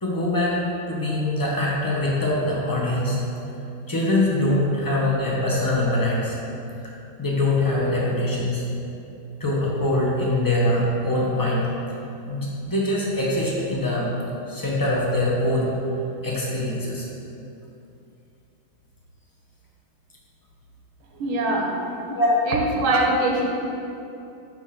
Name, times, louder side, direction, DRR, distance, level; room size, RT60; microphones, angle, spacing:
voice 1, 0.0-0.6 0.9-3.2 3.9-6.3 7.2-8.7 9.4-11.7 12.3-14.1 14.5-15.7 16.2-17.0 22.1-22.4, left 1 dB, 15° left, -5 dB, 0.6 m, -23 dB
voice 2, 21.2-21.8 22.5-23.4, right 2 dB, 80° right, 0 dB, 1.8 m, -22 dB
8.8 x 3.4 x 5.9 m, 2.8 s
omnidirectional pair, 2.3 m